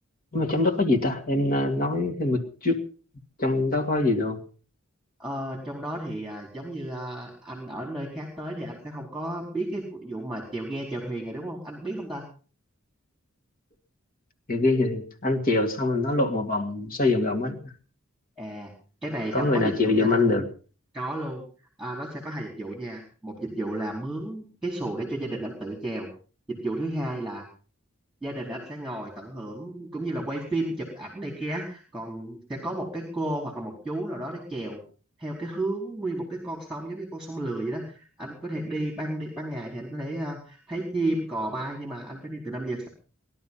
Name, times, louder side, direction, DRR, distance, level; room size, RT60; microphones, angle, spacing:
voice 1, 0.3-2.8 3.4-4.4 14.5-17.7 19.3-20.4, left 2 dB, 45° left, 3 dB, 2.3 m, -24 dB
voice 2, 5.2-12.2 18.4-18.7 19.0-20.3 20.9-21.4 21.8-26.1 26.5-27.5 28.2-34.8 35.2-42.9, right 1 dB, ahead, 1 dB, 4.3 m, -33 dB
20.0 x 12.0 x 5.6 m, 0.39 s
head